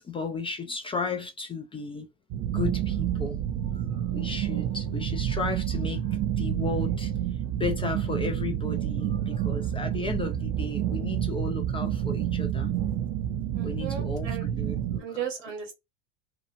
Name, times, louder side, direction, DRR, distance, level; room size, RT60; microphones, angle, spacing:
voice 1, 0.0-2.1 2.5-7.1 7.5-12.7 13.6-15.0, left 4 dB, 15° left, 0.3 m, -34 dB
sound 1, 2.3-15.0, right 10 dB, 40° right, 0.5 m, -29 dB
voice 2, 13.5-14.5 15.0-15.7, right 8 dB, 80° right, 1.2 m, -35 dB
2.8 x 2.1 x 2.4 m
hypercardioid pair, 85°, 37 cm